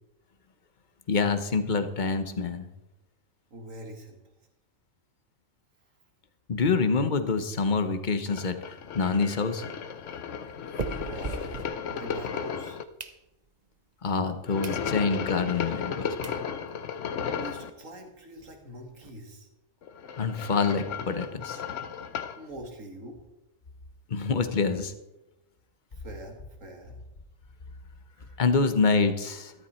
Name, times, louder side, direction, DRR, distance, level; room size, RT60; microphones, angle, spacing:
voice 1, 1.1-2.7 6.5-8.5 8.9-9.6 14.0-16.1 20.2-21.6 24.1-24.9 28.4-29.5, left 4 dB, 40° left, 10 dB, 1.1 m, -26 dB
voice 2, 3.5-4.2 10.9-11.6 11.9-12.8 17.4-19.5 22.4-23.2 25.9-27.0 28.2-28.4, right 1 dB, 75° right, 4 dB, 2.5 m, -43 dB
sound 1, 8.3-12.8 14.5-17.7 19.8-22.4, left 7 dB, 70° left, 1.1 m, -34 dB
sound 2, 8.5-12.3 12.7-13.7 14.2-14.3 14.6-14.8 15.3-15.4 15.9-16.0 16.2-16.4 16.9-17.0 17.1-17.3 17.5-17.6 18.0-19.1, right 4 dB, 35° right, 0.8 m, -41 dB
13.5 x 13.0 x 4.4 m, 0.94 s
omnidirectional pair, 1.4 m